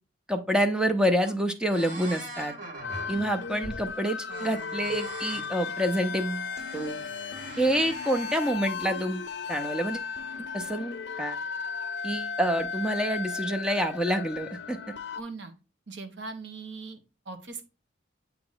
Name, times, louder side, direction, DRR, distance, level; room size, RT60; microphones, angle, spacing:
voice 1, 0.3-2.5 3.1-6.5 6.7-7.0 7.6-10.0 10.5-11.4 12.0-14.8, equal, 5° right, 5 dB, 0.5 m, -27 dB
sound 1, 1.1-1.4 1.7-3.9 4.3-5.5 6.1-8.5, right 2 dB, 50° right, 1.4 m, -42 dB
sound 2, 2.8-15.2, left 5 dB, 70° left, 0.5 m, -36 dB
voice 2, 15.1-15.5 15.9-17.6, right 3 dB, 75° right, 7 dB, 1.0 m, -40 dB
8.6 x 2.9 x 3.9 m, 0.31 s
head